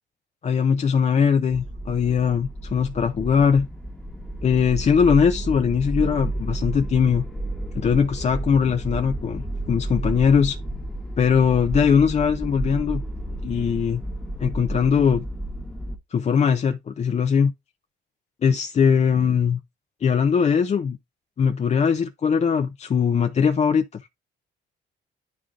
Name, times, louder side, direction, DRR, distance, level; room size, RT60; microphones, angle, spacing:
voice 1, 0.4-3.7 4.4-7.2 7.8-10.6 11.2-13.0 13.4-14.0 14.4-15.2 16.1-17.5 18.4-19.6 20.0-21.0 21.4-24.0, left 6 dB, 35° left, 0.4 m, -20 dB
sound 1, 1.5-16.0, right 1 dB, 5° left, 1.0 m, -31 dB
10.5 x 3.7 x 2.5 m
cardioid pair, 90°, 20 cm